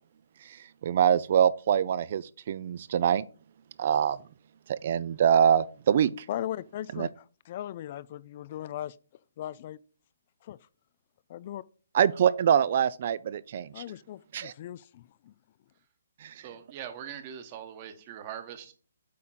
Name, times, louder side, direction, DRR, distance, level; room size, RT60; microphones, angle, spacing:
voice 1, 0.4-3.2 3.8-4.2 4.7-6.3 6.9-7.1 11.9-13.8 14.3-14.5 16.2-16.5, right 9 dB, 45° right, 0.4 m, -25 dB
voice 2, 6.3-7.1 7.5-9.0 9.4-9.8 10.4-10.6 11.3-11.6 13.7-15.3, left 12 dB, 40° left, 0.3 m, -38 dB
voice 3, 16.3-18.7, right 9 dB, 30° right, 1.2 m, -42 dB
8.4 x 3.7 x 4.3 m
hypercardioid pair, 155°, 0 cm